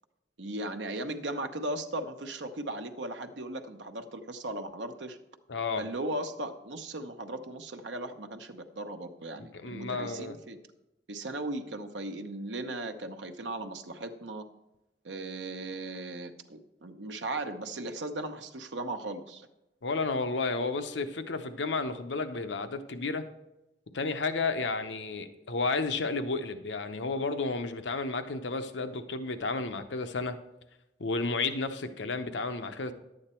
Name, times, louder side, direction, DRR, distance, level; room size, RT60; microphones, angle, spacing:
voice 1, 0.4-5.2 5.8-10.6 11.1-14.4 15.0-19.5, right 2 dB, 85° right, 7 dB, 1.0 m, -37 dB
voice 2, 5.5-5.9 9.6-10.4 19.8-23.2 23.9-30.4 31.0-32.9, left 3 dB, 85° left, 9 dB, 0.8 m, -32 dB
11.0 x 8.7 x 4.4 m, 0.93 s
head